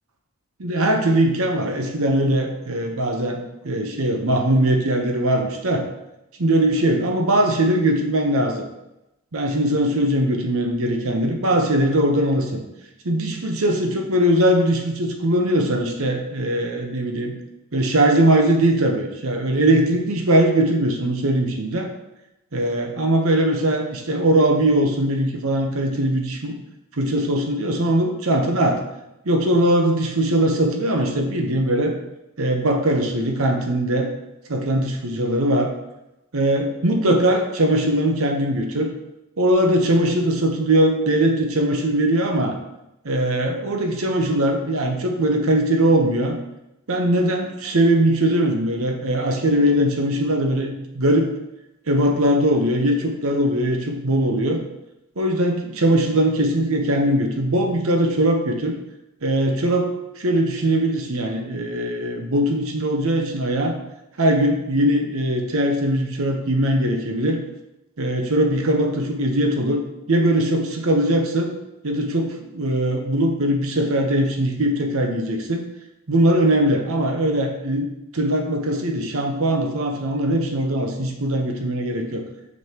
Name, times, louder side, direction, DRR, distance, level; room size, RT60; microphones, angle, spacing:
voice 1, 0.6-3.4 3.6-5.8 6.4-8.6 9.3-12.6 13.0-17.3 17.7-21.9 22.5-26.6 27.0-28.8 29.2-31.9 32.4-34.1 34.5-35.7 36.3-38.9 39.4-42.6 43.0-46.4 46.9-51.3 51.9-54.6 55.2-58.7 59.2-59.9 60.2-63.8 64.2-67.4 68.0-69.8 70.1-71.5 71.8-75.6 76.1-77.9 78.1-82.2, right 1 dB, 70° right, 3 dB, 0.9 m, -20 dB
6.3 x 5.3 x 2.9 m, 0.90 s
head